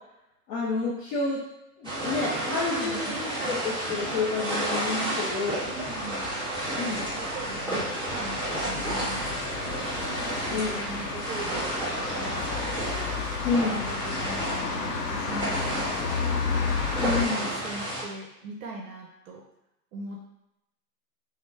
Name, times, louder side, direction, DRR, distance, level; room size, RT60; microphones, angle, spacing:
voice 1, 0.5-1.4 1.8-5.7 6.8-7.1 10.5-10.8 13.4-13.9 17.0-17.5, left 4 dB, 25° left, -6 dB, 0.4 m, -29 dB
sound 1, 1.8-18.0, right 1 dB, 10° right, 1.5 m, -31 dB
voice 2, 2.7-3.0 5.6-6.2 7.0-10.2 10.5-12.8 13.6-16.4 17.2-19.4 19.9-20.2, right 2 dB, 55° right, 0 dB, 0.9 m, -41 dB
sound 2, 5.6-17.2, left 5 dB, 80° left, 0.8 m, -33 dB
5.9 x 2.1 x 3.2 m, 0.88 s
hypercardioid pair, 125°, 48 cm